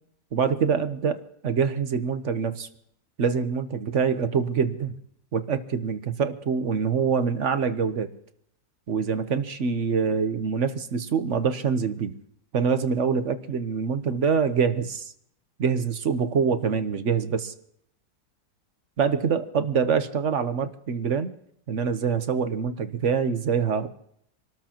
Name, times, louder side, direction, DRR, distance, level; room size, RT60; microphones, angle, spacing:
voice 1, 0.3-2.7 3.2-5.0 5.3-8.1 8.9-12.1 12.5-15.1 15.6-17.5 19.0-21.3 21.7-23.9, right 6 dB, 50° right, 10 dB, 1.0 m, -25 dB
27.0 x 13.5 x 3.0 m, 0.69 s
omnidirectional pair, 2.0 m